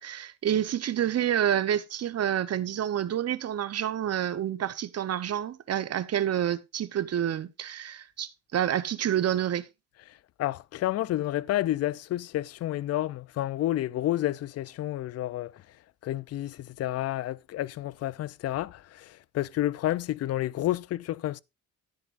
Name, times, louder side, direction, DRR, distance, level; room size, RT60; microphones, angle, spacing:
voice 1, 0.0-9.7, right 10 dB, 45° right, 0.8 m, -28 dB
voice 2, 10.4-15.6 16.0-21.4, left 14 dB, 50° left, 0.4 m, -30 dB
13.5 x 9.5 x 2.5 m
cardioid pair, 120°, 33 cm